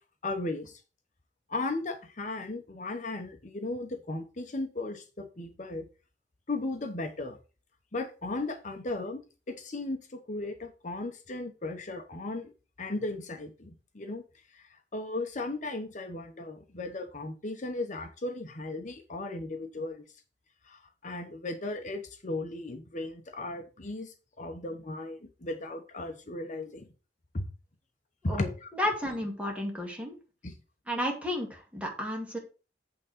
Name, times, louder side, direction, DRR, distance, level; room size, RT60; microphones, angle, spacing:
voice 1, 0.2-0.8 1.5-5.9 6.5-7.4 7.9-9.2 9.5-12.5 12.8-14.2 14.5-20.0 20.6-26.9 27.3-27.4 28.2-28.7 30.4-30.5, left 2 dB, 45° left, 0.9 m, -36 dB
voice 2, 28.3-30.2 30.9-32.4, left 1 dB, 10° right, 2.1 m, -32 dB
8.4 x 3.7 x 6.5 m
head